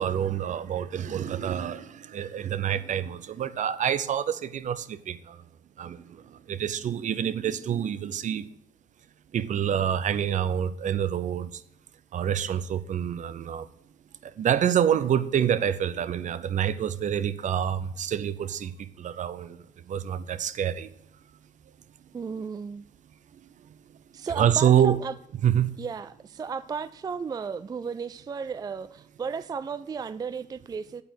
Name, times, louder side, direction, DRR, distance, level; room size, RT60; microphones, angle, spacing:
voice 1, 0.0-5.4 5.8-8.5 9.3-11.6 12.1-13.7 14.2-20.9 24.3-25.0 25.4-25.7, right 9 dB, 55° right, 0.7 m, -27 dB
voice 2, 22.1-22.8 24.1-25.2 25.8-31.0, right 5 dB, 25° right, 0.3 m, -34 dB
8.8 x 8.2 x 6.3 m
cardioid pair, 105°, 15 cm